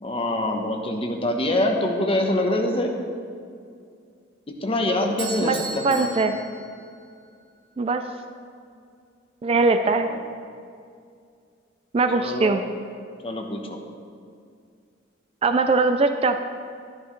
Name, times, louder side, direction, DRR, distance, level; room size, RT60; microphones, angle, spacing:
voice 1, 0.0-2.9 4.5-6.1 10.0-10.2 12.1-12.5 13.2-13.8, left 1 dB, 30° left, 2 dB, 0.9 m, -25 dB
Bell / Doorbell, 5.2-7.3, right 4 dB, 65° right, 1.3 m, -37 dB
voice 2, 5.8-6.3 7.8-8.0 9.4-10.1 11.9-12.6 15.4-16.4, right 3 dB, 30° right, 8 dB, 0.3 m, -21 dB
11.5 x 10.0 x 3.2 m, 2.3 s
head